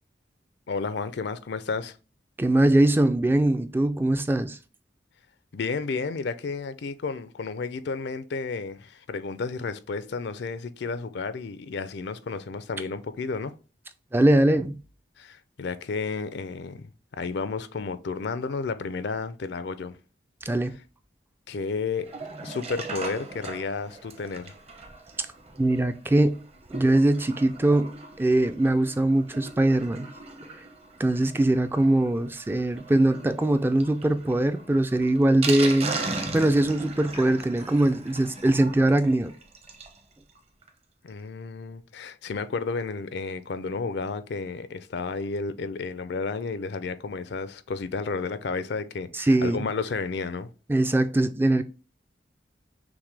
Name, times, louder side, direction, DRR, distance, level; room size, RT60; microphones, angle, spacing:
voice 1, 0.7-2.0 5.5-13.5 15.2-16.9 17.2-20.0 21.5-22.1 22.4-24.5 41.0-50.5, left 4 dB, 70° left, 0.4 m, -32 dB
voice 2, 2.4-4.6 14.1-14.8 20.5-20.7 25.6-26.4 26.7-30.1 30.5-30.7 31.0-36.0 36.3-39.3 49.1-49.6 50.7-51.6, right 1 dB, 10° right, 0.3 m, -22 dB
Sink (filling or washing), 22.0-40.0 40.3-40.4 40.6-40.7 41.1-41.2, right 3 dB, 35° right, 0.8 m, -38 dB
6.0 x 2.2 x 3.3 m
head